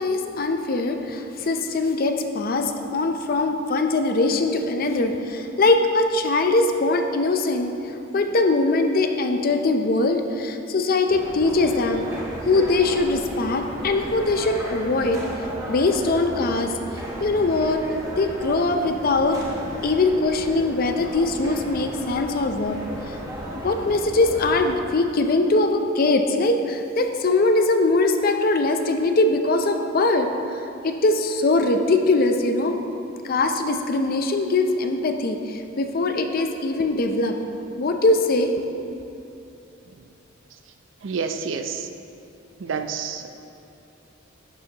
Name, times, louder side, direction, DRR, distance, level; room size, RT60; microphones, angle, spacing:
voice 1, 0.0-7.7 8.1-12.0 12.4-15.2 15.7-16.7 17.2-17.8 18.2-19.4 19.8-22.8 23.5-30.3 30.8-32.8 33.2-37.4 37.8-38.5, left 2 dB, 45° left, 5 dB, 0.5 m, -21 dB
sound 1, 11.1-24.8, equal, 15° right, 1.1 m, -35 dB
voice 2, 41.0-41.9 42.6-43.3, right 5 dB, 65° right, 7 dB, 0.5 m, -28 dB
11.0 x 6.9 x 2.9 m, 2.7 s
head